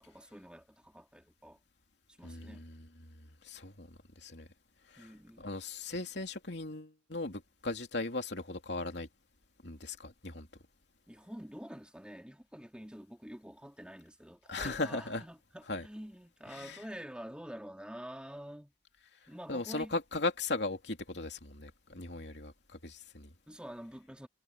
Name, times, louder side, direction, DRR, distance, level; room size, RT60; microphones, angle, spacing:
voice 1, 0.0-1.6 2.1-2.6 5.0-5.5 11.1-18.7 19.3-19.9 23.5-24.3, equal, 5° right, 3.3 m, -47 dB
voice 2, 2.2-3.1 3.4-4.5 4.9-5.1 5.4-9.1 9.6-10.5 14.5-15.2 15.7-15.9 16.5-16.8 19.5-23.3, left 2 dB, 60° left, 3.1 m, -38 dB
head